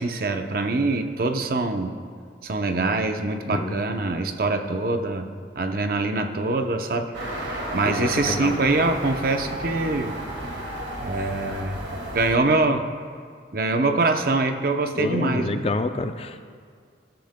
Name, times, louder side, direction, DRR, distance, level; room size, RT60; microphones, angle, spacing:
voice 1, 0.0-2.0 2.4-5.3 5.6-7.1 7.4-10.1 11.0-11.8 12.1-12.8 13.5-15.7, right 3 dB, 50° right, 6 dB, 0.7 m, -24 dB
sound 1, 7.1-12.3, right 1 dB, 75° right, 1.9 m, -32 dB
voice 2, 7.8-8.5 15.0-16.5, left 2 dB, 30° left, 8 dB, 0.4 m, -27 dB
18.5 x 12.0 x 2.2 m, 2.1 s
head